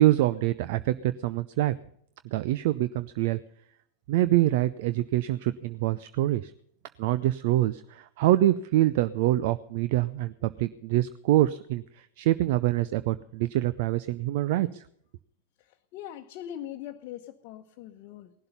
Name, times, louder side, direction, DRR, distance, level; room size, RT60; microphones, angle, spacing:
voice 1, 0.0-1.7 2.3-3.4 4.1-6.5 7.0-14.8, right 15 dB, 50° right, 15 dB, 0.5 m, -25 dB
voice 2, 15.7-18.3, left 11 dB, 45° left, 3 dB, 1.0 m, -41 dB
19.0 x 12.0 x 5.5 m, 0.69 s
figure-of-eight pair, 90°, 0 cm